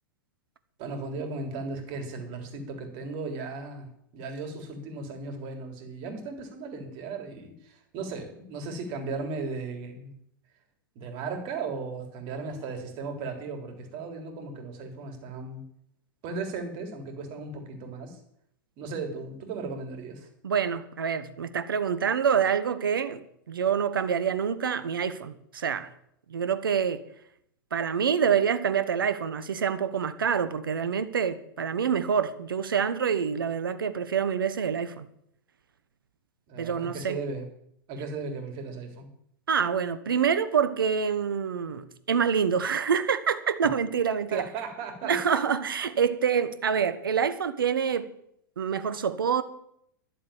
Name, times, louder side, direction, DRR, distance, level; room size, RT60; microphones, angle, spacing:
voice 1, 0.8-10.1 11.0-15.6 16.2-18.2 18.8-20.3 36.5-37.4 37.9-39.1 44.3-45.4, right 4 dB, 45° right, 3.7 m, -36 dB
voice 2, 20.4-25.9 26.3-27.0 27.7-35.1 36.6-37.2 39.5-44.5 45.0-48.1 48.6-49.4, right 7 dB, 80° right, 1.1 m, -26 dB
12.0 x 7.6 x 8.8 m
hypercardioid pair, 100°, 11 cm